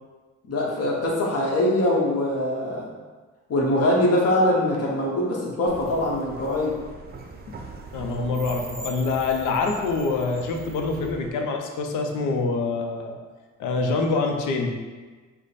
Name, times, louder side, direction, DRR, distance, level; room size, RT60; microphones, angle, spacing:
voice 1, 0.5-2.9 3.5-6.7, left 1 dB, 55° left, -2 dB, 1.1 m, -23 dB
sound 1, 5.7-11.3, right 3 dB, 30° right, 0.5 m, -40 dB
voice 2, 7.9-13.2 13.6-14.7, left 3 dB, 85° left, 3 dB, 0.6 m, -25 dB
4.9 x 2.2 x 4.0 m, 1.4 s
cardioid pair, 90°, 30 cm